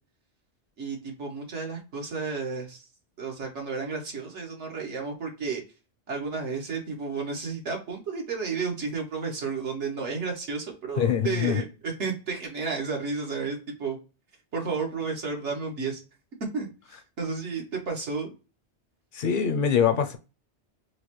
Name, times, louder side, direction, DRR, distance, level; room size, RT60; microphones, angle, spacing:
voice 1, 0.8-2.8 3.2-5.6 6.1-14.0 14.5-16.0 16.5-18.3, right 4 dB, 85° right, 1.5 m, -32 dB
voice 2, 11.0-11.6 19.1-20.2, left 8 dB, 60° left, 0.6 m, -24 dB
4.8 x 2.1 x 2.9 m
omnidirectional pair, 1.2 m